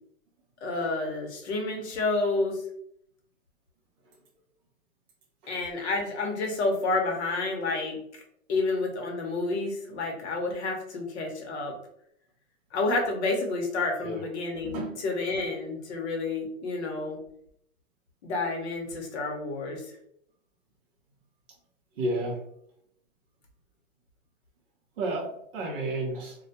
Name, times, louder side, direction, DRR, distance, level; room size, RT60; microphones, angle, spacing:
voice 1, 0.6-2.6 5.5-8.0 8.5-11.7 12.7-17.2 18.2-19.9, left 3 dB, 50° left, 1 dB, 0.8 m, -29 dB
voice 2, 14.6-15.0 22.0-22.4 25.0-26.4, right 2 dB, 40° right, -3 dB, 0.7 m, -31 dB
2.2 x 2.2 x 2.7 m, 0.70 s
hypercardioid pair, 155°, 42 cm